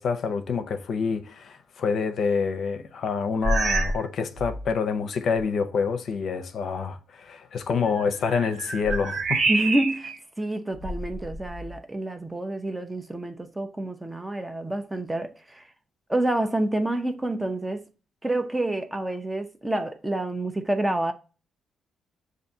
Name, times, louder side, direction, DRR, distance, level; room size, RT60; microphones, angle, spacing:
voice 1, 0.0-9.5, left 5 dB, 60° left, 0.5 m, -27 dB
sound 1, 3.4-4.1 4.4-4.7 5.4-5.5 7.9-10.2 10.7-11.8, right 2 dB, 50° right, 0.7 m, -27 dB
voice 2, 9.5-15.6 16.1-17.8 18.2-21.1, right 1 dB, 15° right, 0.5 m, -28 dB
6.7 x 2.6 x 2.7 m
cardioid pair, 90°, 0 cm